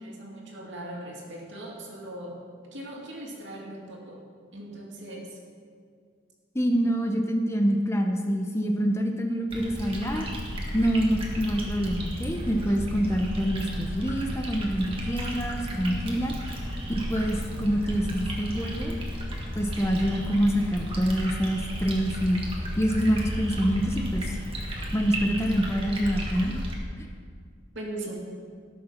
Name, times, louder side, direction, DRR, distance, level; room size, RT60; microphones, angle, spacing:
voice 1, 0.0-2.4 2.7-4.2 4.5-5.4 27.7-28.1, right 1 dB, 60° right, -2 dB, 2.5 m, -39 dB
voice 2, 6.5-10.3 10.7-16.3 16.9-19.0 19.5-22.4 22.8-24.4 24.9-26.7 27.0-27.1, equal, 15° left, 3 dB, 0.7 m, -26 dB
sound 1, 9.5-26.7, equal, 25° right, 1.7 m, -33 dB
18.0 x 6.8 x 5.7 m, 2.1 s
head